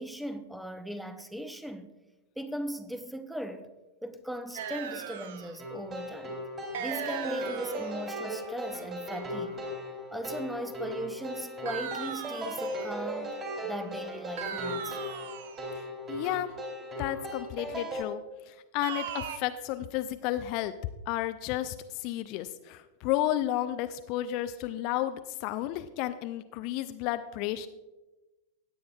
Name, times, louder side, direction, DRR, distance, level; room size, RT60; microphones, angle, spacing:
voice 1, 0.0-1.9 2.4-3.7 4.0-6.4 6.8-9.6 10.1-13.3 13.6-15.0, equal, ahead, 0.7 m, -38 dB
sound 1, 4.6-5.6 6.7-8.0 11.7-13.0 14.4-15.7 18.8-19.4, right 8 dB, 55° right, 0.7 m, -38 dB
sound 2, 5.6-18.0, equal, 25° right, 2.9 m, -37 dB
voice 2, 15.7-16.5 17.0-18.2 18.5-20.7 21.1-27.7, left 13 dB, 45° left, 0.4 m, -32 dB
17.0 x 8.5 x 2.3 m
figure-of-eight pair, 90°, 0 cm